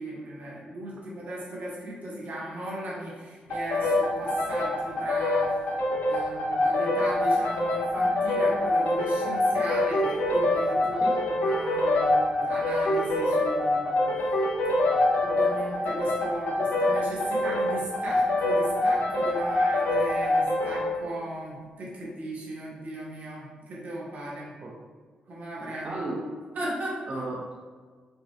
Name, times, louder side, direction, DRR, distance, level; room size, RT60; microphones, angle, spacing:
voice 1, 0.0-5.7 6.0-13.9 14.2-14.4 15.2-24.5 25.3-26.0 26.5-27.0, right 1 dB, 65° right, -6 dB, 1.5 m, -36 dB
sound 1, 3.5-20.9, left 1 dB, 85° left, 0.7 m, -25 dB
voice 2, 25.6-26.4 27.1-27.6, right 2 dB, 45° right, -3 dB, 0.6 m, -35 dB
5.0 x 2.4 x 3.4 m, 1.5 s
cardioid pair, 75°, 3 cm